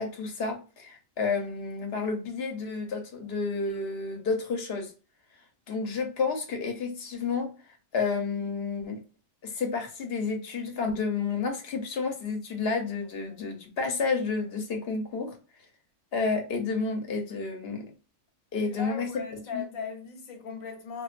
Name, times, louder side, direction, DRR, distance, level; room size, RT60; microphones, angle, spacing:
voice 1, 0.0-4.9 5.7-9.0 9.4-15.4 16.1-17.9 18.5-19.6, left 4 dB, 55° left, 0.8 m, -30 dB
voice 2, 18.7-21.0, left 5 dB, 85° left, 1.2 m, -38 dB
2.4 x 2.3 x 2.3 m
omnidirectional pair, 1.4 m